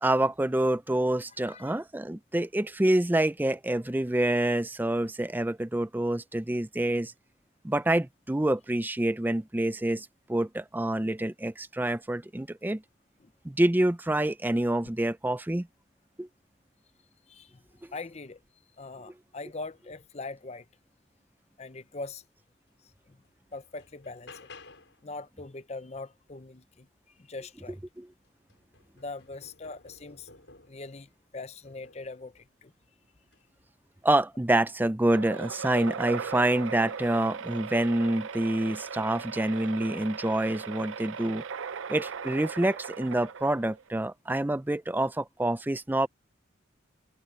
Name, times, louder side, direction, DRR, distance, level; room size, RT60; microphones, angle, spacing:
voice 1, 0.0-7.1 7.6-12.8 13.4-15.7 16.2-16.3 28.0-28.1 34.0-41.4 41.9-46.1, right 1 dB, 10° right, 0.4 m, -27 dB
voice 2, 1.4-1.8 13.2-13.3 17.3-17.6 17.9-18.4 18.8-20.7 21.6-22.2 23.1-23.2 23.5-24.5 25.0-26.9 27.2-27.8 28.9-30.3 30.7-32.7, left 3 dB, 35° left, 0.7 m, -42 dB
sound 1, 22.7-22.8 23.2-25.1 27.4-27.5 28.0-30.9 31.6-32.2 33.2-33.5, left 3 dB, 70° left, 6.2 m, -54 dB
sound 2, 35.1-43.9, right 6 dB, 90° right, 0.5 m, -38 dB
head